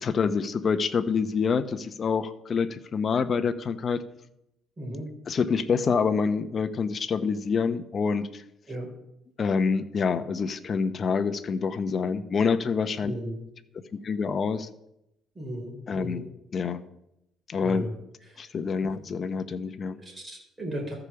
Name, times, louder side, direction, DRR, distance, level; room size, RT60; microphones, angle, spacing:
voice 1, 0.0-4.0 5.3-8.4 9.4-13.1 13.9-14.7 15.9-16.2 16.5-16.8 17.5-17.8 18.4-20.0, left 5 dB, 40° left, 11 dB, 0.8 m, -27 dB
voice 2, 4.8-5.1 8.7-8.9 13.0-13.4 15.3-16.3 17.6-17.9 18.3-18.5 18.8-19.0 20.0-20.9, right 1 dB, 20° right, -1 dB, 4.2 m, -36 dB
13.5 x 4.9 x 6.9 m, 0.83 s
cardioid pair, 105°, 0 cm